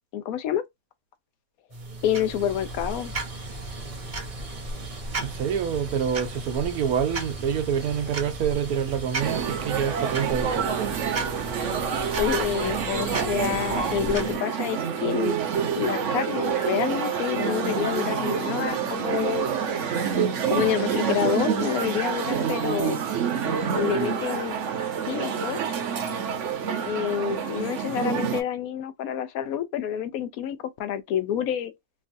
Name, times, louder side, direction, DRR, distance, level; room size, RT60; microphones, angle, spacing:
voice 1, 0.1-0.6 2.0-3.1 12.2-15.4 15.7-19.5 20.5-23.0 23.7-24.5 25.0-25.8 26.9-31.7, left 9 dB, 80° left, 1.0 m, -28 dB
sound 1, 1.7-14.4, right 2 dB, 30° right, 0.7 m, -35 dB
voice 2, 5.2-11.0, right 8 dB, 90° right, 1.2 m, -27 dB
sound 2, 9.2-28.4, right 7 dB, 65° right, 0.9 m, -27 dB
3.0 x 2.5 x 2.5 m
omnidirectional pair, 1.5 m